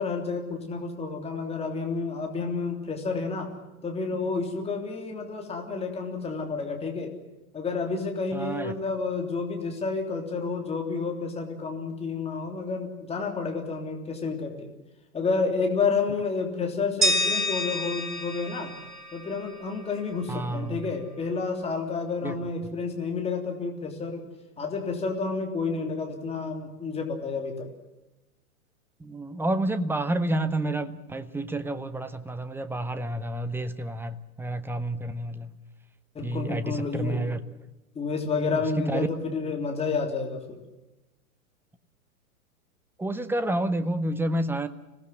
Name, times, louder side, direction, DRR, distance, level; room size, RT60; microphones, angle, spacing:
voice 1, 0.0-3.5 3.8-7.1 7.5-14.7 15.1-18.7 19.1-24.2 24.6-27.7 36.1-37.2 37.9-40.6, left 4 dB, 15° left, 2 dB, 3.4 m, -30 dB
voice 2, 8.3-8.7 20.3-20.8 22.2-22.4 29.0-35.6 36.2-37.4 38.5-39.1 43.0-44.7, right 1 dB, 5° right, 13 dB, 0.9 m, -29 dB
sound 1, 17.0-19.9, left 1 dB, 85° right, 3.3 m, -28 dB
26.0 x 18.0 x 7.7 m, 1.0 s
figure-of-eight pair, 100°, 44 cm